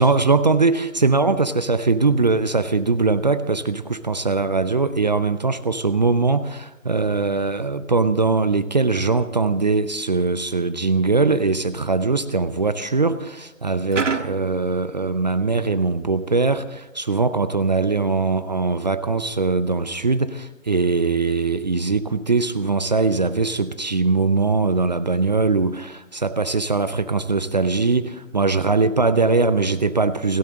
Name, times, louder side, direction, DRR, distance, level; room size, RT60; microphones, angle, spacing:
voice 1, 0.0-30.4, right 3 dB, 35° right, 14 dB, 0.7 m, -21 dB
sound 1, 13.9-15.5, right 5 dB, 65° right, 1.6 m, -28 dB
29.5 x 12.0 x 3.8 m, 0.98 s
figure-of-eight pair, 150°, 39 cm